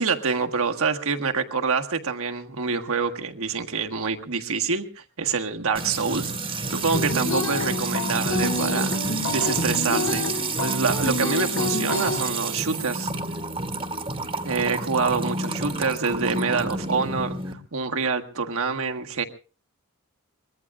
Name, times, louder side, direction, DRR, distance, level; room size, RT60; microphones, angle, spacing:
voice 1, 0.0-10.2 10.6-13.1 14.4-19.2, right 5 dB, 70° right, 5 dB, 1.5 m, -26 dB
Music / Water tap faucet / Trickle dribble, 5.7-17.5, right 2 dB, 25° right, 1.5 m, -29 dB
sound 1, 6.9-12.2, left 2 dB, 70° left, 4.8 m, -28 dB
24.0 x 21.0 x 2.4 m, 0.35 s
head